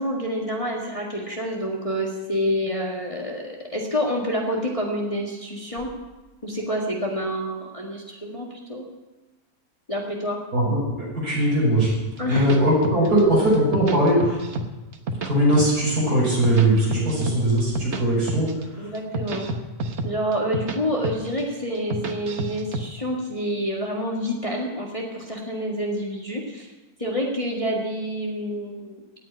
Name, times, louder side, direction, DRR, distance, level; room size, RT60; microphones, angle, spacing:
voice 1, 0.0-5.9 6.4-8.8 9.9-10.4 12.2-12.5 17.1-17.3 18.8-19.5 20.0-26.7 27.0-29.0, equal, 20° left, -2 dB, 2.0 m, -28 dB
voice 2, 10.5-11.9 12.3-14.4 15.2-18.5 18.8-18.9, right 1 dB, 85° right, -6 dB, 6.7 m, -20 dB
sound 1, 11.8-13.2 13.5-14.7 14.9-15.9 16.2-18.0 18.3-18.6 18.9-20.8 21.0-21.4 21.7-22.8, right 2 dB, 50° right, 1.3 m, -29 dB
17.5 x 6.2 x 9.6 m, 1.1 s
omnidirectional pair, 1.6 m